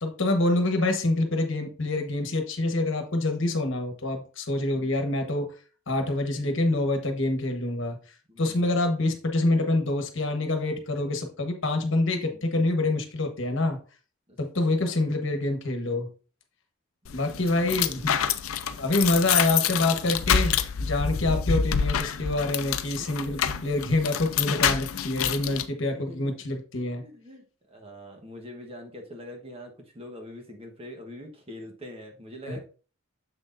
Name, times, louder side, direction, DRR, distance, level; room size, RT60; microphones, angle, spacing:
voice 1, 0.0-5.5 5.9-8.0 8.4-13.8 14.4-16.1 17.1-18.1 18.8-27.0 32.5-32.6, left 2 dB, 60° left, 5 dB, 1.2 m, -26 dB
voice 2, 8.3-8.7 12.3-12.5 14.3-15.2 17.0-18.1 21.7-21.8 23.0-23.1 25.9-26.3 26.7-32.6, left 1 dB, 30° right, 2 dB, 1.2 m, -45 dB
sound 1, 17.0-25.6, left 7 dB, 80° left, 0.5 m, -27 dB
7.4 x 6.2 x 2.6 m, 0.37 s
head